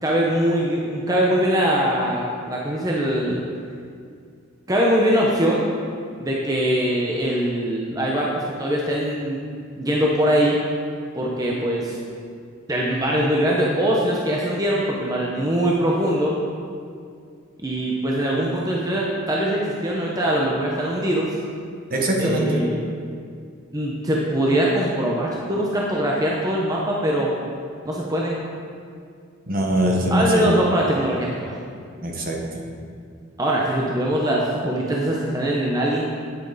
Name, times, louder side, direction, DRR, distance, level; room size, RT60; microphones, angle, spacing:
voice 1, 0.0-3.4 4.7-5.7 6.2-9.4 9.7-10.6 11.2-12.0 12.7-16.4 17.6-21.3 22.2-22.8 23.7-27.3 27.8-28.4 30.1-31.5 33.4-36.1, right 1 dB, 20° right, -3 dB, 0.8 m, -22 dB
voice 2, 21.9-22.6 29.5-30.6 32.0-32.6, right 1 dB, 45° right, 0 dB, 1.2 m, -22 dB
9.1 x 8.1 x 4.0 m, 2.2 s
head